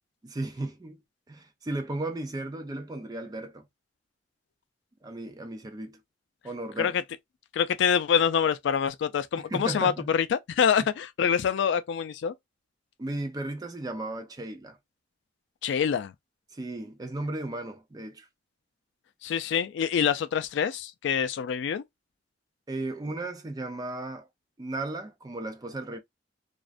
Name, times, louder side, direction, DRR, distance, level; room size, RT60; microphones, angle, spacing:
voice 1, 0.2-1.0 1.3-3.7 5.0-6.0 6.4-7.0 9.5-10.1 13.0-14.8 16.5-18.3 22.7-24.3 24.6-26.0, right 2 dB, 20° right, 0.4 m, -35 dB
voice 2, 7.5-12.3 15.6-16.1 19.2-21.8, left 7 dB, 65° left, 0.3 m, -26 dB
2.4 x 2.1 x 2.4 m
head